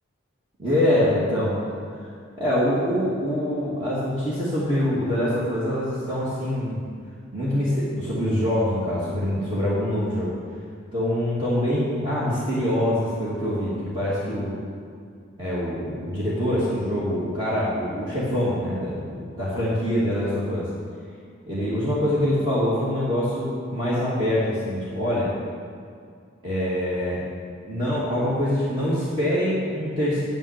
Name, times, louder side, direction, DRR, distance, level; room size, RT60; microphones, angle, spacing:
voice 1, 0.6-1.6 2.0-2.1 2.4-6.9 7.3-10.3 10.9-14.6 15.4-20.7 21.5-25.3 26.4-27.2 27.6-30.2, left 1 dB, 25° right, -10 dB, 2.5 m, -24 dB
9.3 x 7.6 x 8.3 m, 2.3 s
head